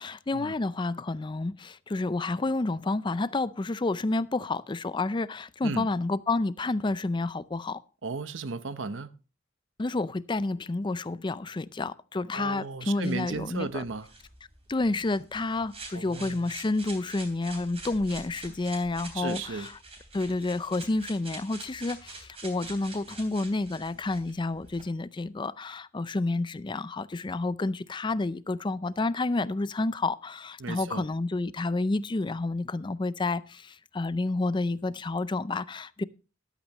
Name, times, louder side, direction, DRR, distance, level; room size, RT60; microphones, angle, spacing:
voice 1, 0.0-7.8 9.8-13.8 14.7-19.7 20.1-36.0, left 2 dB, 25° left, 0.4 m, -30 dB
voice 2, 8.0-9.1 12.3-14.1 15.9-16.5 19.1-19.7 30.6-31.0, right 4 dB, 75° right, 0.8 m, -35 dB
sound 1, 13.0-24.8, right 3 dB, 30° right, 3.3 m, -46 dB
13.5 x 12.0 x 3.0 m
head